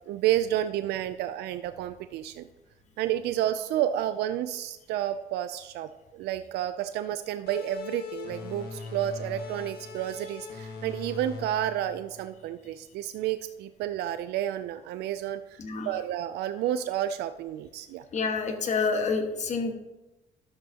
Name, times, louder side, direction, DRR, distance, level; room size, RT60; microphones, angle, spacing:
voice 1, 0.1-2.5 3.0-18.0, right 12 dB, 80° right, 11 dB, 0.4 m, -30 dB
sound 1, 7.5-12.7, left 5 dB, 65° left, 1.6 m, -41 dB
voice 2, 15.6-15.9 18.1-19.7, left 4 dB, 45° left, 5 dB, 1.4 m, -28 dB
12.0 x 7.8 x 2.9 m, 1.0 s
cardioid pair, 110°, 17 cm